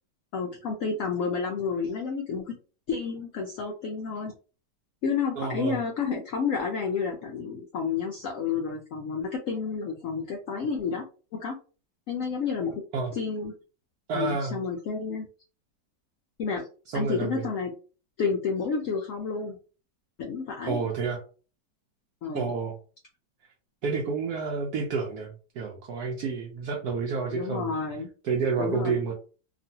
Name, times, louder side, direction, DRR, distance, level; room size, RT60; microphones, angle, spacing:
voice 1, 0.3-2.6 2.9-4.3 5.0-11.1 11.3-11.6 12.1-12.8 13.1-13.5 14.1-15.3 16.4-16.7 16.9-17.7 18.2-19.6 20.2-20.8 22.2-22.5 27.3-28.1 28.6-29.0, left 5 dB, 75° left, 2 dB, 0.7 m, -30 dB
voice 2, 5.4-5.8 12.9-13.1 14.1-14.6 16.9-17.4 20.7-21.2 22.3-22.8 23.8-27.7 28.2-29.1, right 5 dB, 70° right, 1 dB, 1.0 m, -29 dB
3.0 x 2.5 x 2.7 m, 0.37 s
omnidirectional pair, 1.9 m